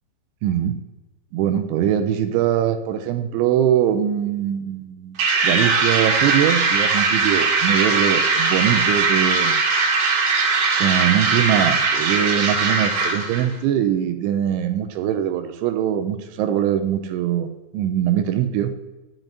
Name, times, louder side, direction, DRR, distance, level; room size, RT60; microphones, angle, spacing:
voice 1, 0.4-0.8 1.3-5.2 5.4-9.6 10.8-18.7, right 10 dB, 80° right, 8 dB, 3.0 m, -22 dB
sound 1, 5.2-13.5, right 4 dB, 65° right, 3.7 m, -20 dB
10.5 x 7.6 x 3.9 m, 1.1 s
omnidirectional pair, 5.5 m